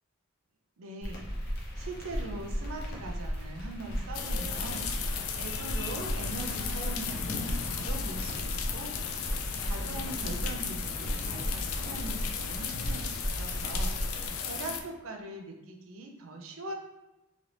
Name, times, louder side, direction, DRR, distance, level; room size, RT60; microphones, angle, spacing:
voice 1, 0.8-1.3 1.8-9.0 9.6-16.7, right 2 dB, 85° right, 2 dB, 0.5 m, -41 dB
sound 1, 1.0-14.3, equal, 45° left, 0.7 m, -36 dB
sound 2, 4.1-14.8, left 6 dB, 90° left, 0.4 m, -35 dB
2.9 x 2.5 x 3.2 m, 0.99 s
head